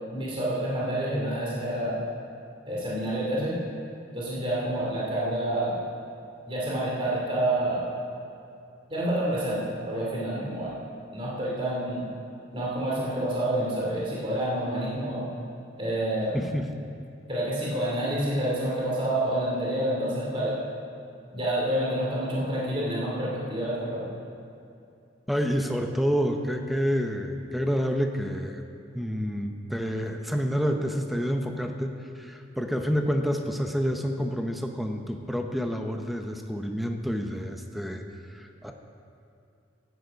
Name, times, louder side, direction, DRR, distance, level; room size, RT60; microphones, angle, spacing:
voice 1, 0.1-2.0 2.7-3.6 4.1-5.8 6.5-7.8 8.9-9.6 9.9-10.8 11.1-12.1 12.5-15.2 15.8-16.4 17.3-20.6 21.3-24.1, right 1 dB, 30° right, -6 dB, 2.6 m, -28 dB
voice 2, 16.3-16.7 25.3-28.6 28.9-38.0 38.3-38.7, equal, ahead, 4 dB, 0.7 m, -28 dB
14.0 x 9.2 x 5.2 m, 2.5 s
head